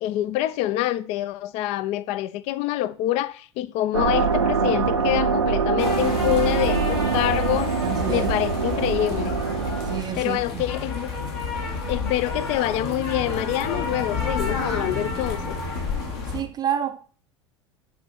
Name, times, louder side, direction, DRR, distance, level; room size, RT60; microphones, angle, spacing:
voice 1, 0.0-7.7 8.1-9.4 10.2-11.1 11.9-15.6, left 14 dB, 45° left, 0.4 m, -26 dB
sound 1, 3.9-10.0, right 5 dB, 80° right, 0.6 m, -24 dB
sound 2, 5.8-16.4, left 4 dB, 60° left, 1.9 m, -30 dB
voice 2, 7.8-8.3 9.9-10.6 16.3-17.0, right 10 dB, 30° right, 0.4 m, -28 dB
8.0 x 3.8 x 4.3 m
figure-of-eight pair, 75°, 15 cm